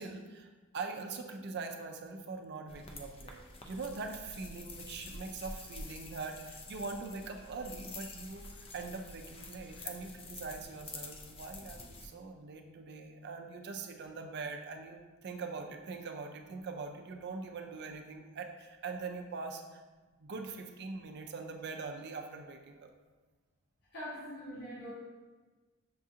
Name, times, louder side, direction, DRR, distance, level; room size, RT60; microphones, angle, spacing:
voice 1, 0.0-19.8 20.2-22.9, right 4 dB, 50° right, 4 dB, 0.4 m, -42 dB
sound 1, 2.7-12.1, left 3 dB, 25° left, 0.3 m, -48 dB
voice 2, 23.9-24.9, equal, 50° left, -8 dB, 0.9 m, -43 dB
6.4 x 2.5 x 2.7 m, 1.3 s
head